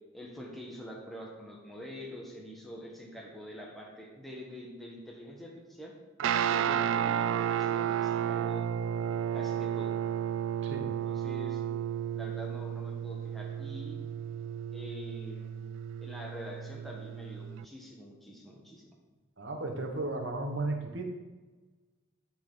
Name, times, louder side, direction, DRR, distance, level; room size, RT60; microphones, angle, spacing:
voice 1, 0.1-5.9 6.4-8.6 9.3-9.9 11.0-11.6 12.1-14.0 14.7-15.5 16.0-18.9, equal, ahead, -2 dB, 1.1 m, -45 dB
Guitar, 6.2-17.6, right 9 dB, 85° right, 0.3 m, -32 dB
voice 2, 19.4-21.0, right 2 dB, 70° right, 2 dB, 1.2 m, -34 dB
11.0 x 4.4 x 3.8 m, 1.3 s
head